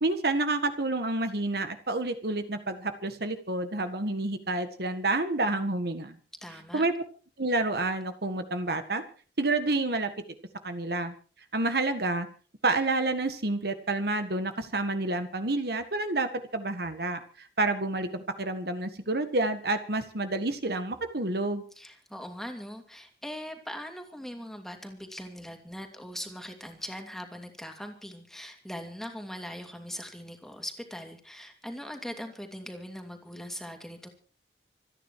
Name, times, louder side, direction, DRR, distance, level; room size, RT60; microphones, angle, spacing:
voice 1, 0.0-6.2 6.7-6.9 7.4-9.0 9.4-10.1 10.6-11.1 11.5-12.3 12.6-21.7, right 2 dB, 60° right, 9 dB, 1.7 m, -29 dB
voice 2, 6.4-6.8 21.7-34.1, equal, ahead, 4 dB, 2.7 m, -41 dB
26.5 x 10.0 x 4.7 m, 0.39 s
head